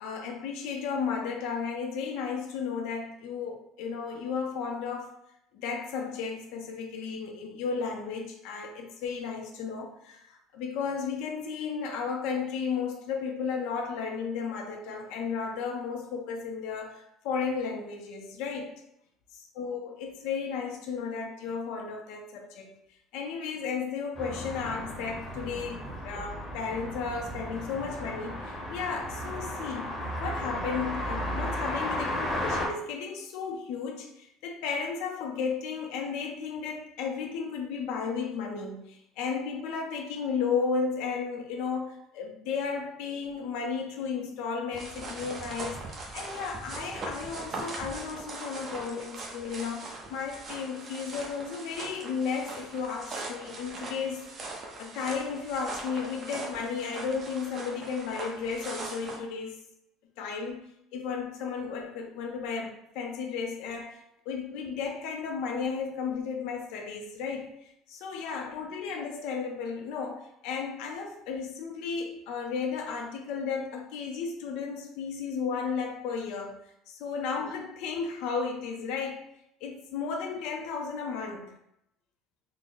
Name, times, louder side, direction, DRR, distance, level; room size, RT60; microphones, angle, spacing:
voice 1, 0.0-5.1 5.5-18.7 19.3-22.7 23.1-29.9 30.2-54.3 54.8-59.6 60.2-60.6 60.9-79.2 79.6-81.5, left 5 dB, 65° left, 2 dB, 0.5 m, -34 dB
sound 1, 24.1-32.7, equal, 20° left, 0.8 m, -34 dB
sound 2, 44.7-59.2, right 2 dB, 30° right, 0.6 m, -40 dB
3.6 x 2.0 x 3.8 m, 0.78 s
cardioid pair, 165°, 0 cm